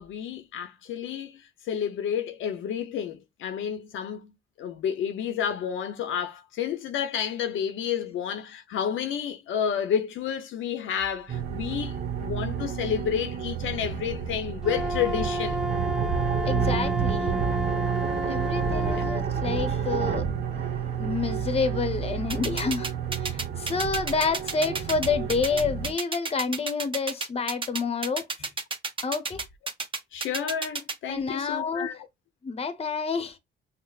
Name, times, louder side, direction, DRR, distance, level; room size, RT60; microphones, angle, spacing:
voice 1, 0.0-1.4 1.7-4.3 4.6-15.6 18.9-19.0 30.1-32.0, left 8 dB, 80° left, 0.7 m, -30 dB
sound 1, 11.3-25.9, right 7 dB, 55° right, 1.0 m, -30 dB
Wind instrument woodwind instrument, 14.6-19.3, right 1 dB, 5° right, 0.5 m, -31 dB
voice 2, 16.5-17.4 18.2-20.3 20.6-22.9 23.2-28.5 29.0-29.4 31.1-32.0 32.4-33.4, left 4 dB, 30° left, 0.8 m, -29 dB
sound 2, 22.3-30.9, right 4 dB, 25° right, 0.9 m, -31 dB
5.6 x 2.0 x 2.3 m
cardioid pair, 90°, 20 cm